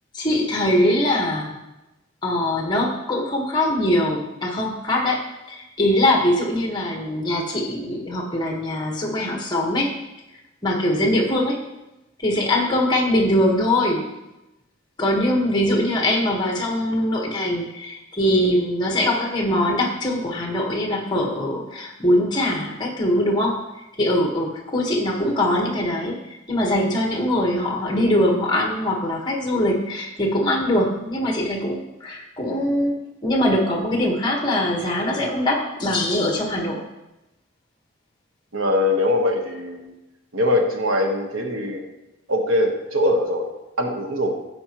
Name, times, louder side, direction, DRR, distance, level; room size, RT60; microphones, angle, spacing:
voice 1, 0.1-1.6 2.2-5.2 5.5-9.9 10.6-11.6 12.2-14.0 15.0-23.5 24.0-26.2 26.5-32.9 33.2-36.8, left 1 dB, 20° left, -1 dB, 1.4 m, -22 dB
voice 2, 38.5-39.9 40.3-41.8 42.3-43.5 43.8-44.4, left 1 dB, 85° right, 3 dB, 1.2 m, -22 dB
14.5 x 5.2 x 3.0 m, 0.99 s
head